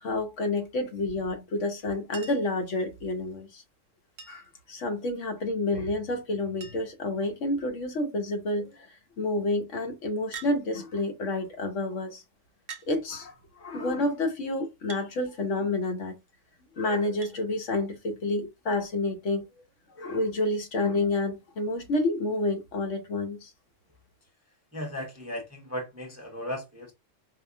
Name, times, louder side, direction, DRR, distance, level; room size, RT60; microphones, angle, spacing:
voice 1, 0.0-3.6 4.3-8.9 9.2-12.2 12.9-16.2 16.8-19.5 20.0-23.5, left 2 dB, 75° left, 1.2 m, -29 dB
Chink clink, 2.1-2.6 4.2-4.6 6.0-6.1 6.3-6.4 6.6-7.1 7.8-8.2 10.3-10.6 11.6-11.7 12.7-12.9 14.9-15.1 17.2-17.4 18.8-18.9, right 5 dB, 55° right, 0.8 m, -43 dB
voice 2, 24.7-26.9, equal, 20° right, 0.5 m, -36 dB
4.8 x 2.3 x 2.2 m
omnidirectional pair, 1.3 m